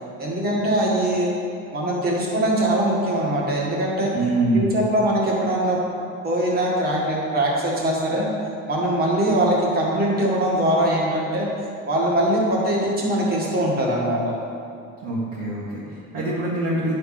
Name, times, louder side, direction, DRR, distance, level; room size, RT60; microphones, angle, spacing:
voice 1, 0.2-1.3 1.7-4.1 4.5-5.8 6.2-8.3 8.7-11.5 11.9-14.4, right 1 dB, 30° right, -3 dB, 1.8 m, -22 dB
voice 2, 4.1-4.8 15.0-16.9, right 2 dB, 50° right, -8 dB, 1.8 m, -24 dB
9.9 x 4.7 x 5.9 m, 2.6 s
cardioid pair, 170°, 30 cm